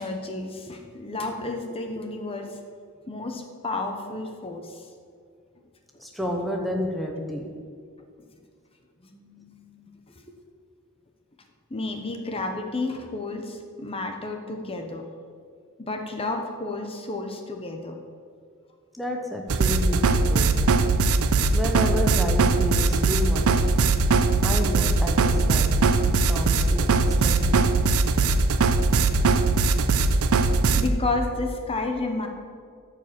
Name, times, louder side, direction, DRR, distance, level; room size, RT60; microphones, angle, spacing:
voice 1, 0.0-2.6 3.0-4.9 9.0-9.9 11.7-15.0 15.8-18.0 30.8-32.3, left 2 dB, 25° left, 4 dB, 0.9 m, -31 dB
voice 2, 6.0-7.5 18.9-20.6 21.5-23.7 24.4-25.8 26.0-27.7, left 1 dB, ahead, 1 dB, 0.9 m, -30 dB
sound 1, 19.5-30.9, right 3 dB, 70° right, 0.6 m, -20 dB
13.5 x 5.1 x 7.5 m, 2.2 s
head